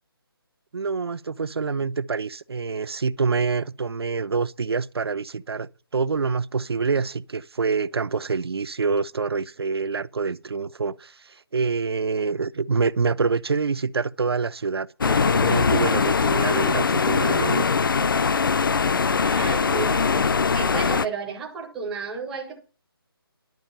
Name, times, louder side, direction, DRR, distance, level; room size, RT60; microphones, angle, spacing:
voice 1, 0.7-17.7, right 4 dB, 80° right, 0.5 m, -26 dB
sound 1, 15.0-21.1, left 5 dB, 60° left, 0.5 m, -21 dB
voice 2, 19.2-22.6, right 5 dB, 5° right, 0.5 m, -33 dB
10.5 x 7.3 x 5.5 m
hypercardioid pair, 170°, 13 cm